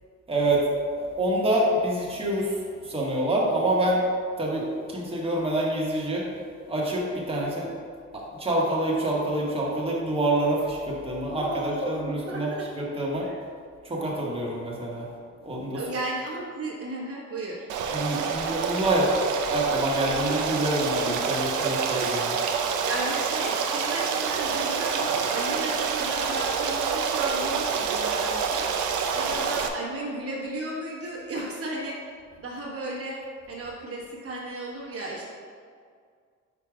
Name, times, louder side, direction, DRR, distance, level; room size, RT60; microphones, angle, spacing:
voice 1, 0.3-0.7 0.9-4.0 4.4-6.3 6.7-7.7 8.1-13.3 13.8-15.1 15.4-15.9 17.9-22.4, right 1 dB, 20° right, -4 dB, 1.3 m, -26 dB
voice 2, 11.3-12.7 13.2-13.5 15.7-17.7 22.8-33.2 33.5-35.3, right 2 dB, 50° right, -4 dB, 1.3 m, -34 dB
Stream, 17.7-29.7, right 6 dB, 80° right, 0.6 m, -27 dB
5.0 x 4.4 x 4.9 m, 2.1 s
cardioid pair, 90°, 30 cm